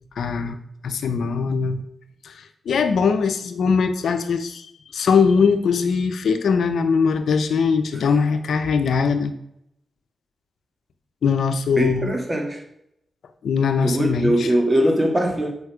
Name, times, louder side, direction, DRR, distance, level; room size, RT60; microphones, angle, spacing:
voice 1, 0.2-0.6 0.8-1.8 2.2-2.3 2.7-4.6 4.9-9.3 11.2-12.1 13.4-14.5, left 5 dB, 80° left, 8 dB, 0.7 m, -21 dB
voice 2, 11.8-12.6 13.8-15.5, right 1 dB, 25° right, 3 dB, 2.1 m, -21 dB
8.0 x 5.3 x 4.9 m, 0.77 s
cardioid pair, 60°, 0 cm